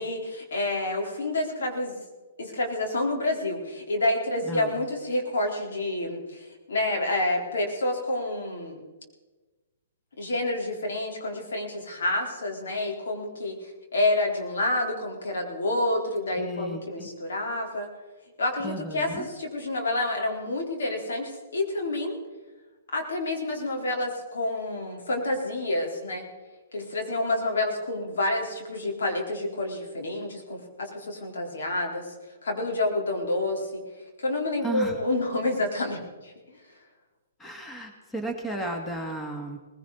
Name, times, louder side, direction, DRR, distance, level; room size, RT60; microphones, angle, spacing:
voice 1, 0.0-2.0 2.4-8.8 10.2-17.9 18.4-22.2 22.9-26.3 26.7-32.1 32.4-33.8 34.2-36.6, left 2 dB, 75° left, 1 dB, 3.9 m, -28 dB
voice 2, 4.4-4.8 16.3-17.1 18.6-19.3 34.6-35.0 37.4-39.6, right 1 dB, 10° left, 3 dB, 2.2 m, -34 dB
20.0 x 16.5 x 4.1 m, 1.3 s
hypercardioid pair, 135°, 0 cm